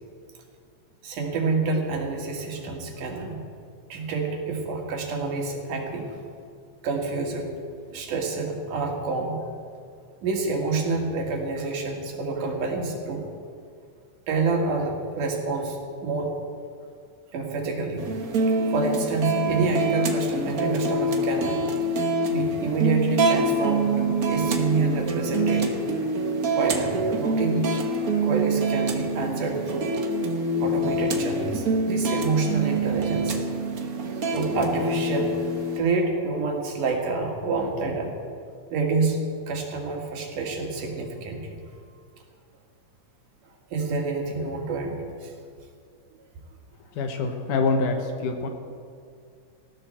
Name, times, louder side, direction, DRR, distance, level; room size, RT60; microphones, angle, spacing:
voice 1, 1.0-3.4 3.9-6.1 6.8-7.5 7.9-9.4 10.2-13.3 14.3-16.3 17.3-18.0 18.7-21.7 21.9-22.0 22.3-25.8 26.5-27.6 28.0-29.9 30.6-33.4 34.3-35.4 35.8-38.1 38.7-41.4 43.7-45.3, right 3 dB, 90° right, 1 dB, 3.7 m, -27 dB
sound 1, 18.0-35.8, right 2 dB, 70° right, 0.8 m, -25 dB
voice 2, 46.9-48.5, left 3 dB, 85° left, 4 dB, 2.8 m, -25 dB
19.5 x 14.5 x 4.4 m, 2.3 s
omnidirectional pair, 3.5 m